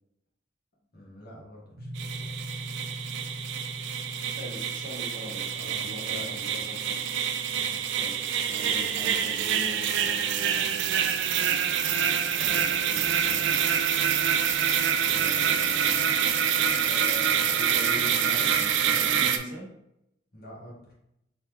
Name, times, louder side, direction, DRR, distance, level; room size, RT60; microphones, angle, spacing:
voice 1, 0.9-2.4 5.5-6.7 7.6-7.9 20.3-20.9, equal, 50° left, -4 dB, 1.5 m, -48 dB
sound 1, 1.8-11.5, equal, 85° right, 0.8 m, -43 dB
sound 2, 2.0-19.4, right 8 dB, 65° right, 0.4 m, -26 dB
voice 2, 4.4-7.0 8.0-10.9 12.3-13.6 15.0-19.7, equal, 45° right, -3 dB, 1.1 m, -42 dB
3.9 x 3.5 x 3.0 m, 0.80 s
head